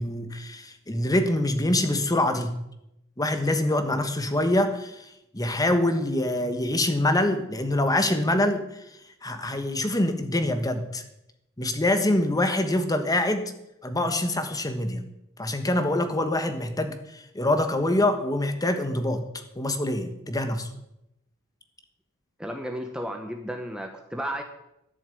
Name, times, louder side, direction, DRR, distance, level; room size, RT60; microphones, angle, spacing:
voice 1, 0.0-2.6 3.2-5.1 5.3-8.6 9.2-11.0 11.6-13.4 13.8-15.0 15.4-19.2 19.6-20.7, left 1 dB, 15° left, 8 dB, 1.2 m, -25 dB
voice 2, 22.4-24.4, equal, 5° right, 4 dB, 0.9 m, -33 dB
12.5 x 7.1 x 8.4 m, 0.84 s
head